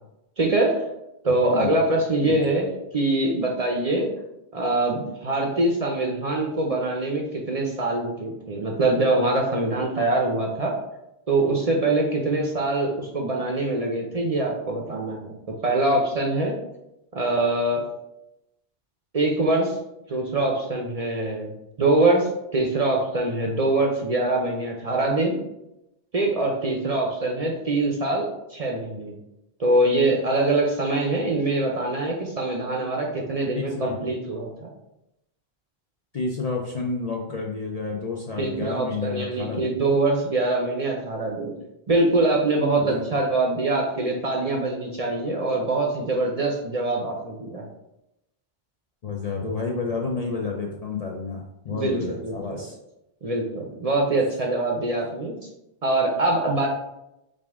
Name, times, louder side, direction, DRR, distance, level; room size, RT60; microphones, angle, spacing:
voice 1, 0.4-0.8 1.2-4.1 4.5-10.7 11.3-15.4 15.6-16.6 17.1-17.8 19.1-19.8 20.1-25.4 26.1-29.1 29.6-34.7 38.4-41.5 41.9-47.6 51.7-52.6 53.2-55.3 55.8-56.7, right 2 dB, 45° right, 0 dB, 0.6 m, -24 dB
voice 2, 33.5-34.0 36.1-39.7 42.9-43.0 49.0-52.7, left 4 dB, 50° left, -1 dB, 0.5 m, -30 dB
4.9 x 2.4 x 3.5 m, 0.87 s
omnidirectional pair, 1.1 m